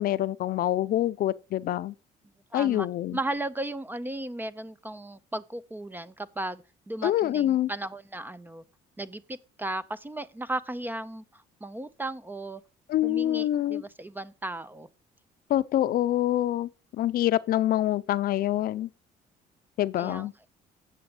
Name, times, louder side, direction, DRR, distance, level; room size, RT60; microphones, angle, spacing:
voice 1, 0.0-1.9 2.5-3.2 7.0-7.7 12.9-13.8 15.5-18.9 19.8-20.3, left 13 dB, 60° left, 0.5 m, -26 dB
voice 2, 2.5-2.9 3.1-8.6 9.0-12.6 13.0-14.9 20.0-20.3, right 2 dB, 10° right, 0.5 m, -35 dB
8.3 x 6.9 x 4.8 m
cardioid pair, 110°, 17 cm